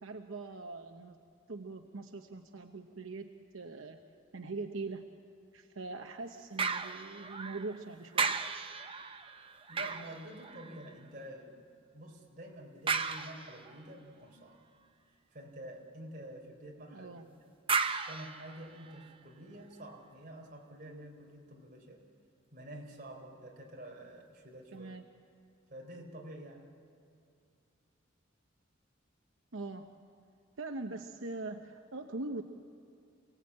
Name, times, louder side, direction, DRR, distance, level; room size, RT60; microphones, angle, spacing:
voice 1, 0.0-1.2 1.5-4.0 4.3-5.0 5.5-8.4 16.9-17.2 24.7-25.0 29.5-29.9 30.6-32.4, right 3 dB, 80° right, 5 dB, 1.0 m, -42 dB
sound 1, 6.6-7.8 8.1-11.0 12.9-13.8 17.7-19.1 19.7-19.8, right 5 dB, 25° right, 0.8 m, -35 dB
voice 2, 9.7-11.6 11.9-14.6 15.3-17.6 18.1-22.0 22.5-24.9 25.7-26.7, right 1 dB, 40° right, 0 dB, 4.0 m, -48 dB
28.0 x 17.5 x 8.7 m, 2.4 s
head